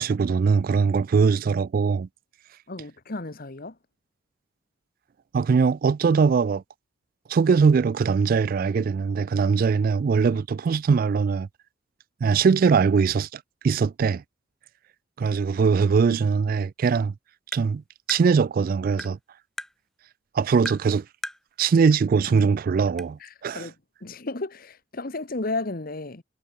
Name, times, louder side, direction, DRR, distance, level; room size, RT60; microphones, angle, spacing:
voice 1, 0.0-2.1 5.3-6.6 7.3-11.5 12.2-14.2 15.2-17.1 17.5-17.8 18.1-19.2 20.3-21.0 21.6-23.7, right 5 dB, 50° right, 0.3 m, -21 dB
voice 2, 2.7-3.8 16.1-16.2 23.2-23.7 24.0-26.2, left 2 dB, 50° left, 1.3 m, -33 dB
Tap, 17.5-17.7 18.1-18.2 19.0-19.1 19.6-19.7 20.7-20.8 21.2-21.4 22.4-22.5 23.0-23.1, equal, ahead, 3.0 m, -35 dB
head